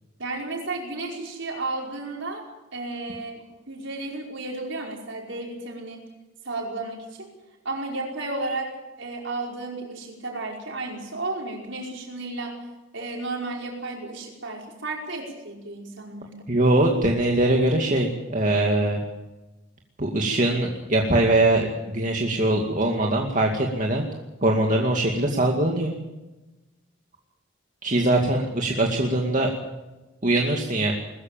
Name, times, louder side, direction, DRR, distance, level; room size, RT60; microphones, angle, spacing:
voice 1, 0.2-2.5 2.7-6.0 6.4-7.3 7.6-12.7 12.9-16.6, right 2 dB, 65° right, 0 dB, 5.2 m, -33 dB
voice 2, 16.5-19.0 20.0-24.0 24.4-25.9 27.8-29.5 30.2-30.9, right 1 dB, 40° right, 0 dB, 2.3 m, -22 dB
21.0 x 15.0 x 9.2 m, 1.1 s
head